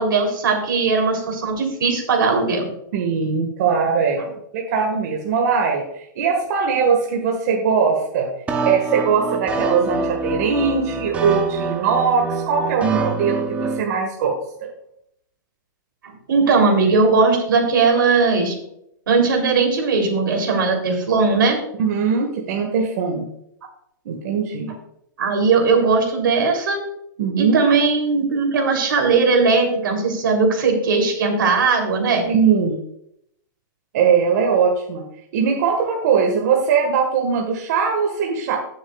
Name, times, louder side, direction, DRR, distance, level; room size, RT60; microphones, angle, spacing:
voice 1, 0.0-2.7 16.3-18.6 19.1-21.6 25.2-26.8 27.4-32.3, right 4 dB, 85° right, 2 dB, 3.3 m, -18 dB
voice 2, 2.9-4.2 4.5-8.3 8.6-14.4 14.6-14.7 21.8-23.3 24.0-24.7 27.2-27.6 32.3-32.8 33.9-35.0 35.3-38.6, right 6 dB, 50° right, 1 dB, 1.6 m, -20 dB
sound 1, 8.5-13.8, right 4 dB, 10° right, 0.9 m, -25 dB
15.5 x 7.2 x 2.4 m, 0.75 s
hypercardioid pair, 155°, 11 cm